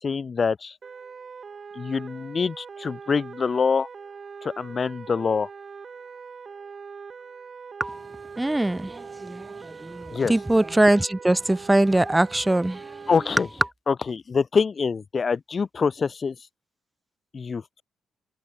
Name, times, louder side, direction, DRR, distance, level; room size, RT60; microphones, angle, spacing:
voice 1, 0.0-0.7 1.8-3.9 4.4-5.5 10.1-10.3 13.1-13.5 13.9-16.4 17.3-17.8, left 5 dB, 30° left, 5.7 m, -25 dB
sound 1, 0.8-13.3, right 5 dB, 35° right, 5.7 m, -42 dB
voice 2, 8.4-13.1, right 1 dB, 10° right, 2.6 m, -23 dB
cardioid pair, 145°, 0 cm